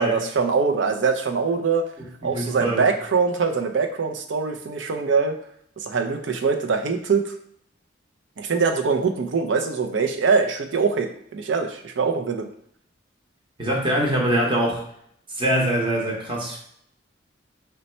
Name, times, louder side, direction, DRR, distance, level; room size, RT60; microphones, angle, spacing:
voice 1, 0.0-1.9 2.2-5.4 5.8-7.2 8.4-12.5, right 5 dB, 75° right, 5 dB, 0.5 m, -23 dB
voice 2, 2.2-2.9 13.6-14.8 15.4-16.6, right 1 dB, 25° right, -1 dB, 0.8 m, -23 dB
4.0 x 2.2 x 4.2 m, 0.69 s
head